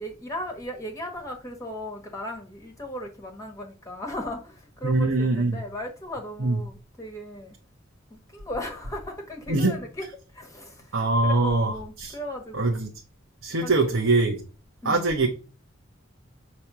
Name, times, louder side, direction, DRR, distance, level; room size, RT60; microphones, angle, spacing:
voice 1, 0.0-7.5 8.1-10.1 10.3-12.7 13.6-13.9 14.8-15.1, left 1 dB, 15° left, 1.2 m, -37 dB
voice 2, 4.8-5.6 6.4-6.6 9.5-9.7 10.9-12.1 12.5-12.9 13.4-14.4 14.8-15.3, right 2 dB, 90° right, 1.2 m, -23 dB
7.0 x 3.2 x 6.0 m
head